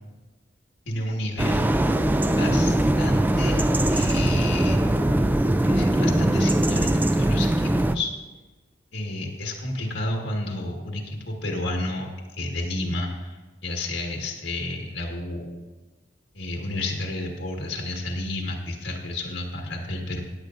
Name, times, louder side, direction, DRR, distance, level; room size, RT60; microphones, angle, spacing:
voice 1, 0.9-1.7 2.3-4.8 5.5-8.1 8.9-12.1 12.4-15.6 16.3-20.2, left 1 dB, 75° left, 0 dB, 1.6 m, -31 dB
sound 1, 1.4-8.0, right 1 dB, 10° right, 0.3 m, -21 dB
16.0 x 10.0 x 2.5 m, 1.2 s
head